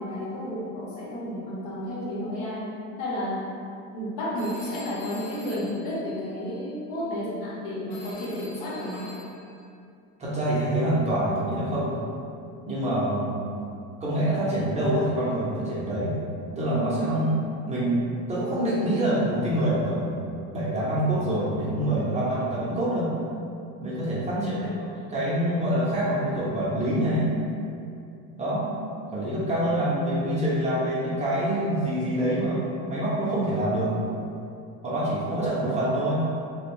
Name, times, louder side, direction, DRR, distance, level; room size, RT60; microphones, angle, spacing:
voice 1, 0.0-3.4 3.9-9.1 24.3-24.6, left 1 dB, 75° left, -6 dB, 0.9 m, -32 dB
Telephone, 4.3-6.7 7.9-9.6, left 1 dB, 50° left, 1.1 m, -44 dB
voice 2, 10.2-12.0 12.7-13.4 14.0-16.2 16.6-17.4 17.6-20.2 20.5-23.1 23.8-27.3 28.3-28.7 29.1-33.9 34.8-36.2, right 1 dB, 20° right, -8 dB, 0.5 m, -26 dB
2.5 x 2.1 x 2.9 m, 2.5 s
cardioid pair, 130°, 37 cm